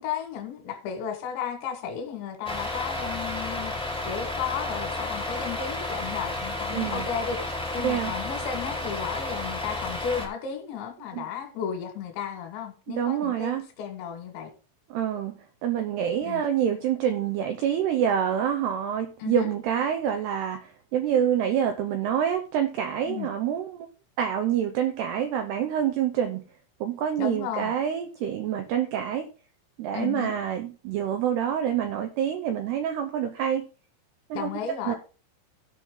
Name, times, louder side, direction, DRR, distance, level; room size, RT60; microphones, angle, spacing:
voice 1, 0.0-14.5 16.2-16.4 19.2-19.5 23.1-23.3 27.2-27.7 29.9-30.3 34.3-35.0, left 8 dB, 70° left, 3.5 m, -34 dB
Truck, 2.4-10.3, left 2 dB, 5° left, 0.9 m, -32 dB
voice 2, 6.7-7.1 7.8-8.1 11.1-11.3 12.9-13.7 14.9-23.9 24.2-26.4 26.8-29.3 29.8-33.7 34.3-34.5 34.9-35.0, right 9 dB, 85° right, 2.3 m, -27 dB
16.5 x 5.6 x 3.7 m
omnidirectional pair, 5.8 m